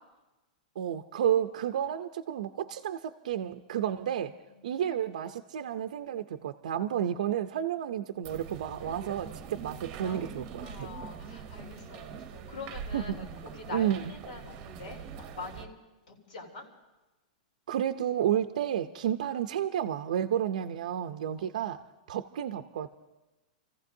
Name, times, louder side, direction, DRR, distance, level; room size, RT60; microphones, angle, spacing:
voice 1, 0.8-4.3 4.6-10.9 12.9-13.3 13.7-14.1 17.7-21.8 22.1-22.9, right 10 dB, 70° right, 7 dB, 0.5 m, -31 dB
voice 2, 4.5-4.8 10.0-15.7 16.1-16.6 21.4-21.5, left 4 dB, 90° left, -1 dB, 3.6 m, -45 dB
sound 1, 8.2-15.7, right 6 dB, 25° right, 0.8 m, -43 dB
29.5 x 15.0 x 2.7 m, 1.1 s
supercardioid pair, 170°, 4 cm